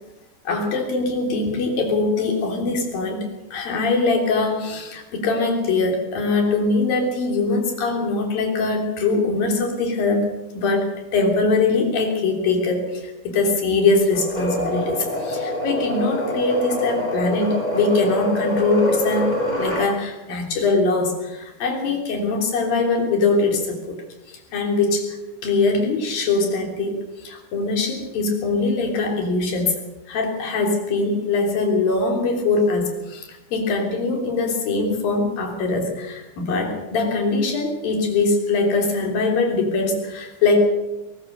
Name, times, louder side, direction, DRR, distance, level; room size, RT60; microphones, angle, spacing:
voice 1, 0.4-10.3 10.5-24.0 24.3-25.2 25.4-29.8 30.1-40.6, left 3 dB, 70° left, 3 dB, 5.1 m, -22 dB
sound 1, 14.1-19.9, equal, 10° left, 5.9 m, -25 dB
20.5 x 18.5 x 6.8 m, 1.0 s
omnidirectional pair, 4.3 m